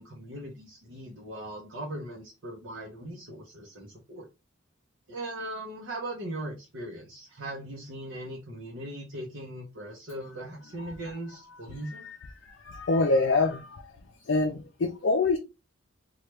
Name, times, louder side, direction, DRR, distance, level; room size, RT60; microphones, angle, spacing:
voice 1, 0.0-4.3 5.1-12.1, right 1 dB, 65° right, 0.8 m, -39 dB
voice 2, 12.4-13.8 14.3-15.4, left 3 dB, 60° left, 0.4 m, -26 dB
3.2 x 2.4 x 3.0 m
head